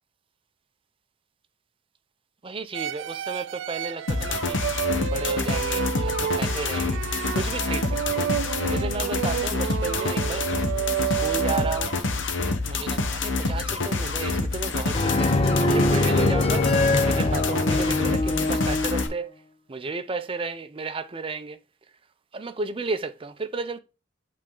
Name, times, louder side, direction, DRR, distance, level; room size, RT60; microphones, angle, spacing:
voice 1, 2.4-4.6 5.0-7.0 7.3-8.3 8.7-10.4 11.2-12.0 12.7-16.7 17.1-19.3 19.7-21.6 22.3-23.8, right 4 dB, 30° right, 0.5 m, -33 dB
sound 1, 2.7-12.1, right 9 dB, 90° right, 0.3 m, -30 dB
sound 2, 4.1-19.1, left 3 dB, 85° left, 0.9 m, -27 dB
sound 3, 14.9-19.1, left 2 dB, 30° left, 0.8 m, -23 dB
8.0 x 3.4 x 3.7 m
head